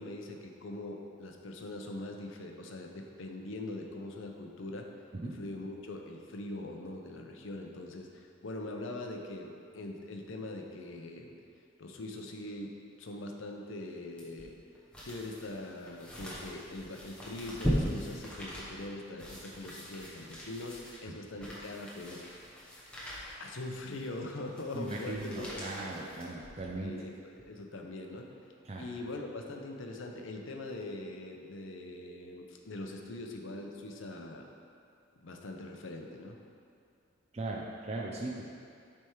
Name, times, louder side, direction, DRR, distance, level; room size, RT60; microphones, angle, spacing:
voice 1, 0.0-4.9 5.2-11.3 11.8-12.7 13.0-14.6 15.0-22.4 23.4-25.9 26.8-28.3 28.8-34.5 35.2-36.4, left 2 dB, 70° left, 2 dB, 0.6 m, -42 dB
sound 1, 14.2-26.8 27.3-27.4, equal, 5° left, 0.9 m, -40 dB
voice 2, 24.7-26.9 28.7-28.9 37.3-38.5, right 2 dB, 30° right, -2 dB, 0.4 m, -38 dB
7.5 x 3.5 x 4.6 m, 2.3 s
head